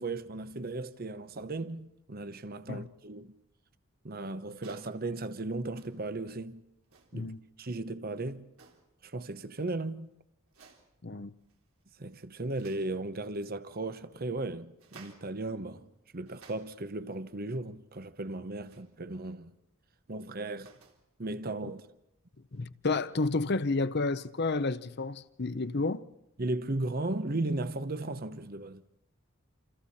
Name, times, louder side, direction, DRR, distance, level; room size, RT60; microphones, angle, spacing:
voice 1, 0.0-3.3 4.0-6.6 7.1-7.3 7.6-8.4 9.0-10.1 12.0-15.9 16.1-19.5 20.1-20.7 21.2-21.8 26.4-28.8, right 2 dB, 45° right, 0.9 m, -36 dB
sound 1, 4.5-5.0 5.7-6.1 6.8-7.2 8.5-9.0 10.5-11.0 11.4-11.8 12.1-12.9 14.7-15.4 16.0-17.0 18.7-18.9 20.3-21.1 22.5-22.6, right 5 dB, 85° right, 3.8 m, -58 dB
voice 2, 22.5-26.0, left 3 dB, 50° left, 0.9 m, -31 dB
28.5 x 27.5 x 4.3 m
head